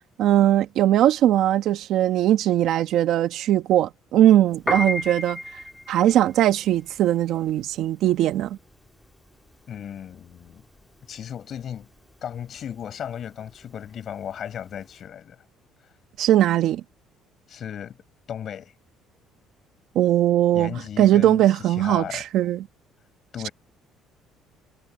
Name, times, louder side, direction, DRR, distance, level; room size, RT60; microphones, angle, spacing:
voice 1, 0.2-5.4 5.9-8.6 16.2-16.8 19.9-22.7, right 12 dB, 65° right, 1.4 m, -20 dB
Piano, 4.5-14.9, left 1 dB, 5° left, 1.6 m, -35 dB
voice 2, 9.7-10.6 11.1-11.9 12.2-15.4 17.5-18.0 18.3-18.7 20.5-22.2 23.3-23.5, left 9 dB, 45° left, 6.0 m, -35 dB
cardioid pair, 140°, 0 cm